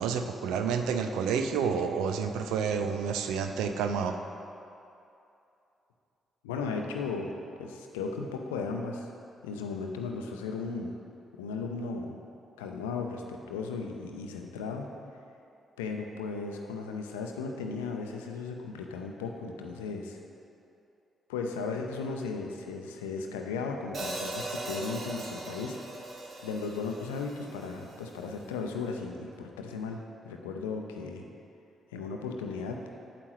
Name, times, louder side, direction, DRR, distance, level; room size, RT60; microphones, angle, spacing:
voice 1, 0.0-4.2, right 6 dB, 70° right, 7 dB, 0.5 m, -29 dB
voice 2, 6.4-7.3 7.6-9.1 9.4-10.9 11.4-12.2 12.6-14.9 15.8-20.2 21.3-25.8 26.4-31.3 31.9-32.8, left 4 dB, 80° left, 3 dB, 0.6 m, -36 dB
Hi-hat, 23.9-28.1, right 2 dB, 50° right, 1.3 m, -39 dB
9.0 x 7.7 x 3.1 m, 2.7 s
figure-of-eight pair, 40°, 0 cm